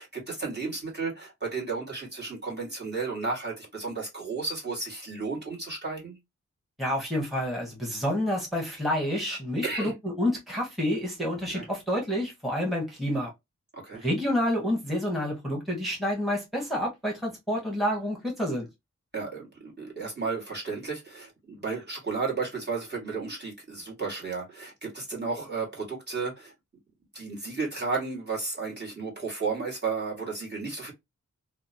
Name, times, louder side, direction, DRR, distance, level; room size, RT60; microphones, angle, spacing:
voice 1, 0.0-6.2 9.6-9.9 11.5-11.7 13.7-14.0 19.1-26.5 27.1-30.9, right 4 dB, 35° right, 1.3 m, -33 dB
voice 2, 6.8-13.3 14.0-18.7, left 1 dB, ahead, 1.0 m, -29 dB
2.8 x 2.0 x 2.6 m
wide cardioid pair, 55°, 30 cm